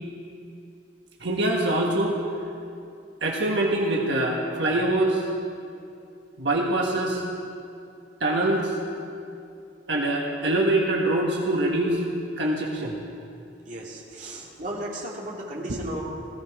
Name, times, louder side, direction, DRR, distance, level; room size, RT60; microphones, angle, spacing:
voice 1, 1.2-2.2 3.2-5.3 6.4-7.2 8.2-8.8 9.9-12.0 12.4-13.0 15.7-15.8, right 1 dB, 80° right, -1 dB, 1.5 m, -24 dB
voice 2, 13.6-16.0, right 1 dB, 45° right, -4 dB, 2.6 m, -35 dB
17.0 x 15.5 x 4.9 m, 2.5 s
head